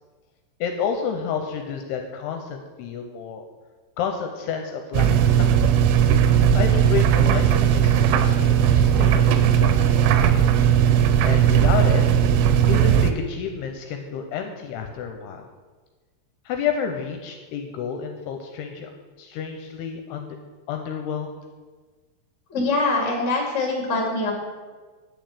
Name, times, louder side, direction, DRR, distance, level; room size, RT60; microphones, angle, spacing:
voice 1, 0.6-3.4 4.0-5.7 6.5-10.4 11.2-12.0 12.7-15.5 16.5-18.9 19.2-20.3 20.7-21.4, left 7 dB, 80° left, 4 dB, 2.5 m, -30 dB
sound 1, 4.9-13.1, right 9 dB, 85° right, 2.8 m, -17 dB
voice 2, 22.5-24.3, left 2 dB, 30° left, -1 dB, 1.3 m, -23 dB
9.0 x 5.3 x 7.5 m, 1.4 s
omnidirectional pair, 5.1 m